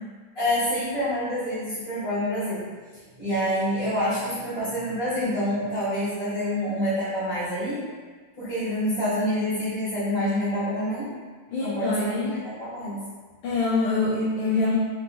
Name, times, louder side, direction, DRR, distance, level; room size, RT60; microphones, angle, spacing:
voice 1, 0.4-2.7 2.9-7.8 8.4-11.1 11.6-13.0, equal, 40° left, -11 dB, 2.0 m, -27 dB
voice 2, 11.5-12.4 13.4-14.8, left 3 dB, 70° left, -6 dB, 1.3 m, -25 dB
4.5 x 3.0 x 2.5 m, 1.4 s
omnidirectional pair, 2.3 m